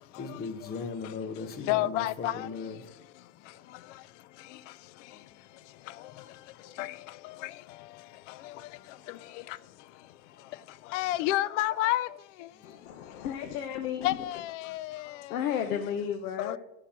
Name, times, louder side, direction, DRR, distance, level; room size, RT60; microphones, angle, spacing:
voice 1, 0.2-2.8 9.5-9.6, left 4 dB, 20° left, 1.0 m, -38 dB
voice 2, 1.7-2.5 6.8-6.9 7.4-7.5 10.9-12.1 14.0-15.1 16.4-16.6, left 15 dB, 50° left, 0.5 m, -29 dB
voice 3, 12.6-14.2 15.3-16.6, left 9 dB, 65° left, 1.1 m, -33 dB
11.5 x 4.7 x 7.1 m
supercardioid pair, 145°, 48 cm